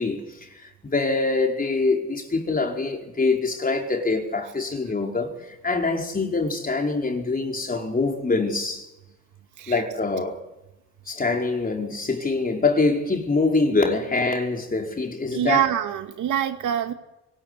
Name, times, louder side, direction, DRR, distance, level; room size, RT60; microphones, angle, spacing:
voice 1, 0.0-8.9 9.7-10.4 11.1-15.6, left 3 dB, 30° left, 4.9 m, -24 dB
voice 2, 15.3-16.9, right 10 dB, 80° right, 2.5 m, -24 dB
24.0 x 18.0 x 9.8 m
cardioid pair, 90°, 30 cm